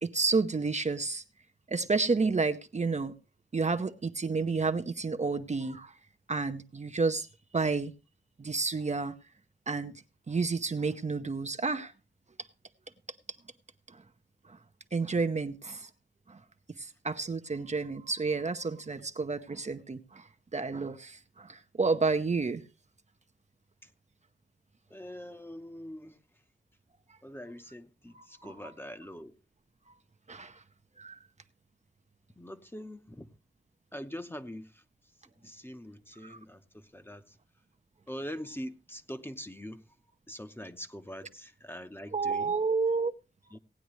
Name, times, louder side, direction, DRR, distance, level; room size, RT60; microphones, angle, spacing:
voice 1, 0.0-1.2 1.7-3.1 3.5-5.9 6.3-7.3 7.5-7.9 8.4-9.1 9.7-9.9 10.3-11.9 14.5-14.6 14.9-15.9 16.3-16.4 16.8-20.2 20.5-22.6 28.1-28.5 30.3-30.6 31.0-31.2 36.2-36.4 42.1-43.1, right 4 dB, 35° right, 0.7 m, -30 dB
voice 2, 24.9-26.2 27.2-29.3 32.4-33.3 33.9-34.8 35.4-37.4 38.1-39.8 40.3-42.6 43.5-43.6, equal, 10° left, 0.9 m, -43 dB
17.5 x 9.3 x 3.1 m
wide cardioid pair, 105°, 19 cm